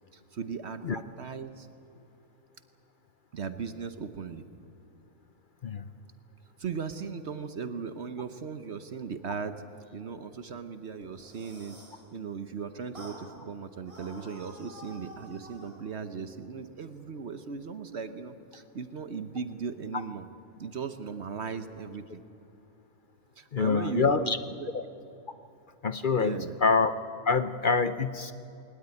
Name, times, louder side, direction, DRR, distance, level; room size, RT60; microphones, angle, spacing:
voice 1, 0.1-1.7 3.3-4.4 6.6-9.6 9.9-11.8 12.1-20.3 20.6-22.2 23.4-24.7 26.2-26.6, right 5 dB, 55° right, 10 dB, 1.1 m, -37 dB
sound 1, 11.0-12.0 12.9-13.2 13.8-15.8, equal, 25° right, 5.1 m, -49 dB
voice 2, 23.5-24.4 24.7-24.8 25.8-26.9 27.2-28.3, left 5 dB, 50° left, 12 dB, 0.7 m, -26 dB
20.5 x 19.0 x 9.7 m, 2.8 s
omnidirectional pair, 1.4 m